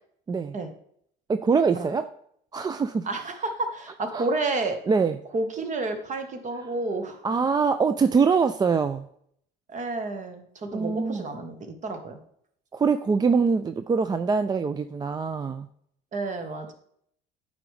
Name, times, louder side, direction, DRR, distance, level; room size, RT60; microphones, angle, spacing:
voice 1, 1.3-2.1 2.5-3.1 4.1-4.3 4.9-5.2 7.2-9.1 10.7-11.3 12.7-15.7, right 5 dB, 20° right, 9 dB, 0.3 m, -23 dB
voice 2, 3.0-4.8 5.3-7.2 9.7-11.6 11.8-12.2 16.1-16.7, right 2 dB, 40° right, 7 dB, 1.3 m, -30 dB
9.0 x 5.0 x 3.3 m, 0.68 s
supercardioid pair, 85°, 20 cm